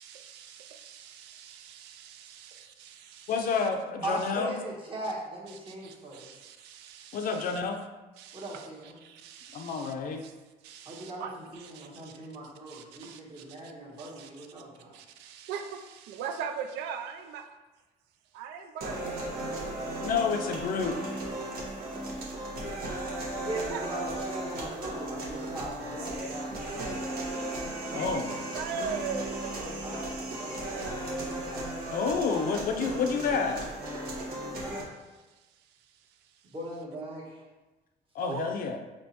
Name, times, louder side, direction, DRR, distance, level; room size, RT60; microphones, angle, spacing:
voice 1, 0.0-3.7 5.5-7.6 8.2-9.9 10.2-10.3 10.6-12.1 12.7-13.7 14.0-14.5 14.9-17.5 18.3-19.2 23.7-23.8 27.6-29.6 34.6-36.5 38.2-38.5, right 7 dB, 90° right, 6 dB, 0.4 m, -41 dB
voice 2, 3.3-4.6 7.1-7.8 9.5-10.2 20.0-21.0 27.9-28.3 31.9-33.7 38.1-38.8, left 5 dB, 55° left, 5 dB, 0.5 m, -29 dB
voice 3, 4.0-6.4 8.3-9.0 10.8-15.0 23.4-27.1 29.5-31.9 36.5-37.4, right 1 dB, 30° right, -3 dB, 1.1 m, -40 dB
sound 1, 18.8-34.8, right 1 dB, 65° right, 1.1 m, -36 dB
4.3 x 3.0 x 2.9 m, 1.1 s
cardioid pair, 110°, 17 cm